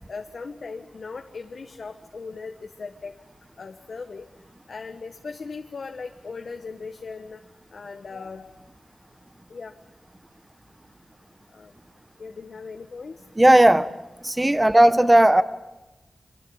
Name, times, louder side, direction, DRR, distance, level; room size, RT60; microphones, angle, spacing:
voice 1, 0.1-3.1 3.6-4.2 4.7-7.4 7.7-8.5 9.5-9.7 11.5-11.7 12.2-13.2 14.8-15.0, left 4 dB, 60° left, 5 dB, 1.5 m, -38 dB
voice 2, 13.4-13.9 14.2-15.4, right 1 dB, 15° right, 14 dB, 1.2 m, -15 dB
25.0 x 24.5 x 8.9 m, 1.1 s
wide cardioid pair, 90°, 0 cm